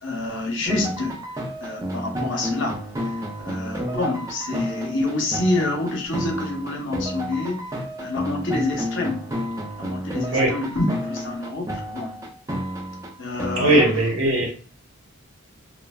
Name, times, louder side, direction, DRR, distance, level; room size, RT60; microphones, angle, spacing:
voice 1, 0.0-9.2 9.8-12.1 13.2-13.9, left 2 dB, 60° left, 1 dB, 0.8 m, -27 dB
sound 1, 0.7-13.9, equal, 15° right, 0.4 m, -31 dB
voice 2, 10.3-10.7 13.6-14.5, right 1 dB, 85° right, -1 dB, 1.0 m, -19 dB
3.2 x 2.0 x 2.3 m, 0.41 s
head